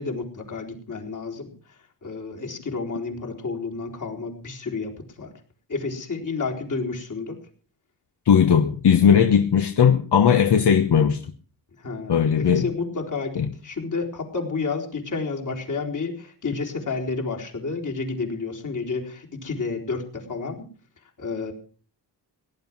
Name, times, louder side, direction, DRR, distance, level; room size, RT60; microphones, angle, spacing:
voice 1, 0.0-1.5 2.0-5.3 5.7-7.4 11.8-20.7 21.2-21.5, left 4 dB, 45° left, 1 dB, 4.1 m, -30 dB
voice 2, 8.3-11.2 12.1-12.6 13.4-13.5, left 7 dB, 70° left, 8 dB, 1.3 m, -18 dB
17.5 x 11.0 x 6.1 m, 0.43 s
wide cardioid pair, 110°, 41 cm